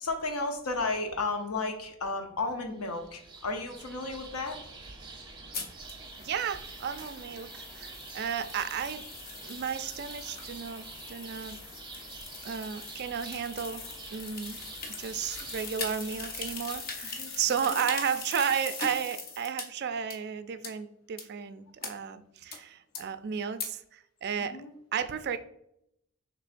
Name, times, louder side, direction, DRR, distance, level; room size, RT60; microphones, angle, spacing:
voice 1, 0.0-4.6 17.2-17.8 24.4-24.7, left 3 dB, 75° left, 4 dB, 0.8 m, -33 dB
sound 1, 2.8-17.9, right 3 dB, 20° right, 0.7 m, -47 dB
sound 2, 5.5-19.6 20.1-20.2 20.6-20.7 21.2-21.3 21.8-21.9 22.5-22.6 22.9-23.0 23.6-23.7, left 4 dB, 40° left, 0.7 m, -41 dB
voice 2, 6.2-9.0 9.4-11.7 12.4-13.9 14.1-14.6 15.0-24.6 24.9-25.4, right 7 dB, 45° right, 11 dB, 0.3 m, -33 dB
6.1 x 3.4 x 2.5 m, 0.76 s
head